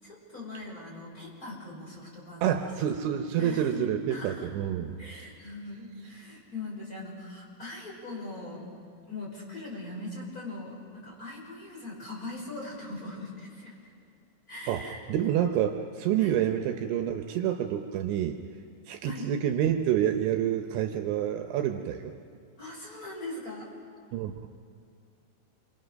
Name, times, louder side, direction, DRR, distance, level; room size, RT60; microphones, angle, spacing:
voice 1, 0.0-2.8 3.4-4.5 5.0-8.7 9.1-13.9 14.5-15.0 16.2-16.4 19.0-19.3 22.6-23.7, left 2 dB, 20° left, -4 dB, 5.4 m, -41 dB
voice 2, 2.4-5.0 14.7-18.4 18.9-22.1 24.1-24.5, right 10 dB, 75° right, 5 dB, 3.1 m, -28 dB
27.5 x 23.5 x 6.4 m, 2.3 s
omnidirectional pair, 5.7 m